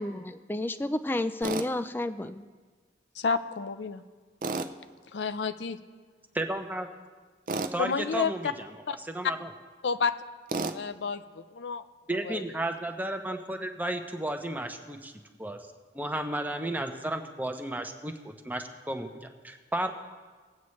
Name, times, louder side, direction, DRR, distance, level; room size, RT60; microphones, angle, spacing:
voice 1, 0.0-2.4, left 1 dB, 10° left, 11 dB, 0.4 m, -31 dB
Tools, 1.4-1.7 4.4-4.7 7.5-7.8 10.5-10.8, right 3 dB, 50° right, 0.5 m, -31 dB
voice 2, 3.2-4.0 5.1-5.8 7.8-8.3 8.9-9.0 9.8-10.1 10.5-11.8 12.3-12.4, left 5 dB, 80° left, 11 dB, 0.6 m, -30 dB
voice 3, 6.3-6.9 7.7-8.7 9.0-9.5 12.1-15.1 15.4-15.7 15.9-19.9, right 1 dB, 10° right, 5 dB, 0.7 m, -33 dB
20.5 x 8.3 x 3.2 m, 1.5 s
head